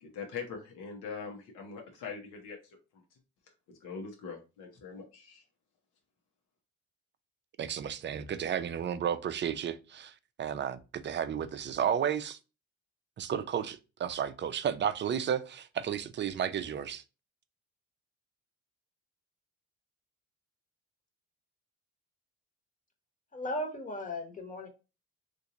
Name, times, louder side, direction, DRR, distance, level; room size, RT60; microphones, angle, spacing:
voice 1, 0.0-3.0 3.7-5.4, left 5 dB, 85° left, 1.0 m, -42 dB
voice 2, 7.6-12.4 13.2-17.0, right 8 dB, 40° right, 0.4 m, -33 dB
voice 3, 23.3-24.7, left 1 dB, 25° left, 1.2 m, -36 dB
2.9 x 2.6 x 3.7 m
cardioid pair, 90°, 30 cm